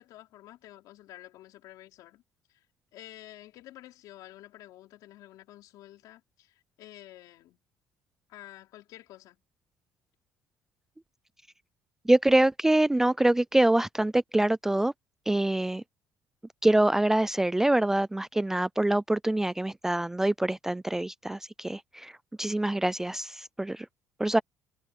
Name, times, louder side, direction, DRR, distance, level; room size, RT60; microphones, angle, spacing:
voice 1, 0.0-2.2 2.5-2.6 2.9-7.6 8.3-9.4, left 15 dB, 70° left, 4.6 m, -50 dB
voice 2, 12.1-14.9 15.3-15.8 16.6-22.1 22.4-23.9 24.2-24.4, right 1 dB, 5° right, 0.3 m, -25 dB
cardioid pair, 150°, 6 cm